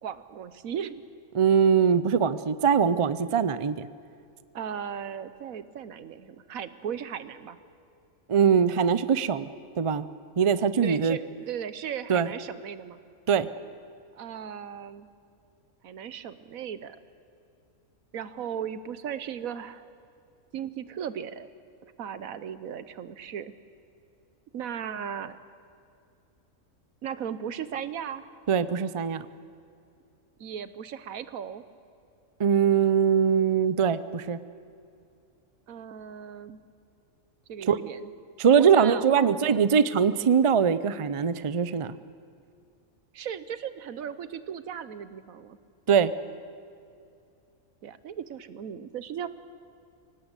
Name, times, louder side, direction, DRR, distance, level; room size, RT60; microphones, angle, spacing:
voice 1, 0.0-1.0 4.5-7.6 10.8-13.0 14.2-15.1 15.8-17.0 18.1-19.9 20.5-21.5 21.8-23.5 24.5-25.4 27.0-28.2 30.4-31.6 35.7-36.6 37.5-38.1 38.6-39.7 43.1-45.6 47.8-49.3, right 8 dB, 80° right, 14 dB, 1.3 m, -36 dB
voice 2, 1.3-3.9 8.3-9.5 9.8-10.1 10.4-11.2 12.1-12.3 13.3-13.5 28.5-29.3 32.4-34.4 37.7-37.8 38.4-42.0 45.9-46.1, right 7 dB, 40° right, 14 dB, 0.4 m, -22 dB
25.5 x 18.0 x 8.2 m, 2.4 s
omnidirectional pair, 1.4 m